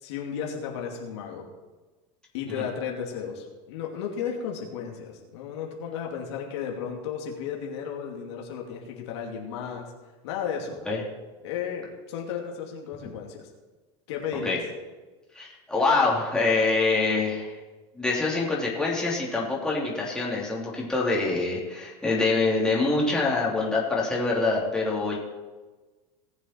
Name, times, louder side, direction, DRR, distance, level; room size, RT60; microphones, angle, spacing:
voice 1, 0.0-1.5 2.3-9.9 10.2-10.8 11.4-13.4 14.1-14.6, left 7 dB, 85° left, 0 dB, 2.6 m, -34 dB
voice 2, 15.3-17.5 17.9-25.2, left 3 dB, 5° left, -5 dB, 3.0 m, -25 dB
18.5 x 7.3 x 4.5 m, 1.2 s
supercardioid pair, 140°, 14 cm